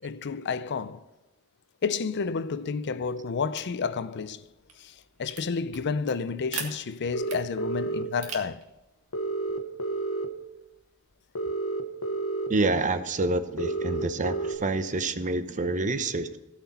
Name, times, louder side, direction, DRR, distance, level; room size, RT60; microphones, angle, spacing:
voice 1, 0.0-1.0 1.8-4.5 4.8-8.7, left 5 dB, 50° left, 0.5 m, -30 dB
sound 1, 3.5-11.4, right 5 dB, 80° right, 1.9 m, -45 dB
sound 2, 7.1-8.0 9.1-10.3 11.4-12.5 13.6-14.5, right 2 dB, 80° left, 1.1 m, -30 dB
voice 2, 12.5-16.4, right 2 dB, 35° right, 0.7 m, -27 dB
17.0 x 6.0 x 4.2 m
head